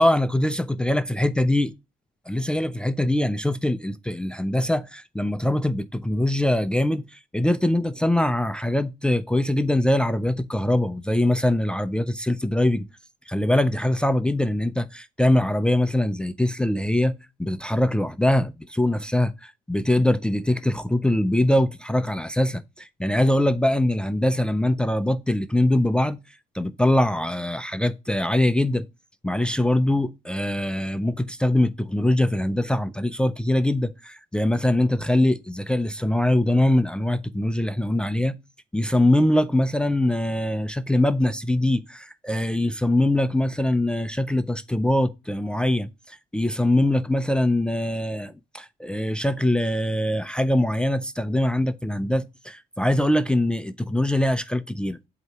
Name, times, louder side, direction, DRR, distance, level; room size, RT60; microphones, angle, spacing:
voice 1, 0.0-1.7 2.3-12.9 13.3-17.1 17.4-26.2 26.5-28.9 29.2-38.3 38.7-55.0, left 1 dB, 5° left, 0.4 m, -23 dB
7.9 x 2.8 x 4.5 m
cardioid pair, 110°, 17 cm